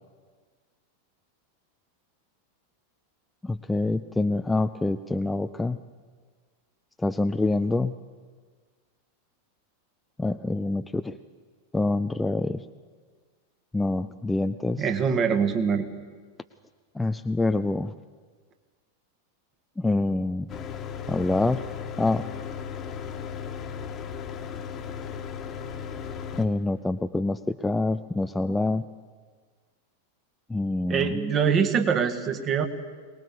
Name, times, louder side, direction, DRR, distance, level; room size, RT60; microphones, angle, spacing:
voice 1, 3.4-5.8 7.0-7.9 10.2-11.2 11.7-12.6 13.7-14.8 17.0-17.9 19.8-20.5 21.1-21.6 22.0-22.3 26.3-28.8 30.5-31.2, left 2 dB, 5° left, 9 dB, 0.6 m, -26 dB
voice 2, 14.8-15.8 30.9-32.7, right 6 dB, 30° right, 7 dB, 1.9 m, -24 dB
Mechanical fan, 20.5-26.5, left 7 dB, 30° left, 1.6 m, -36 dB
23.0 x 20.0 x 7.1 m, 1.5 s
figure-of-eight pair, 90°, 0 cm